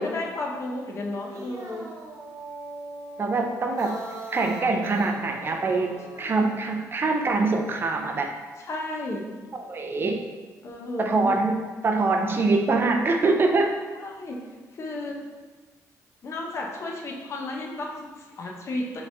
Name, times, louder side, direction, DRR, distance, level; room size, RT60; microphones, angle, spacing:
voice 1, 0.0-1.9 6.1-6.5 8.6-9.3 10.6-11.5 14.0-14.4 14.7-15.2 16.2-19.0, left 2 dB, 45° left, -1 dB, 0.7 m, -33 dB
sound 1, 1.1-6.6, right 3 dB, 60° right, 0.8 m, -41 dB
voice 2, 3.2-4.0 4.3-8.3 9.5-10.2 11.0-11.6 11.8-13.8, right 3 dB, 35° right, 3 dB, 0.4 m, -24 dB
5.0 x 3.0 x 3.3 m, 1.4 s
cardioid pair, 125°, 6 cm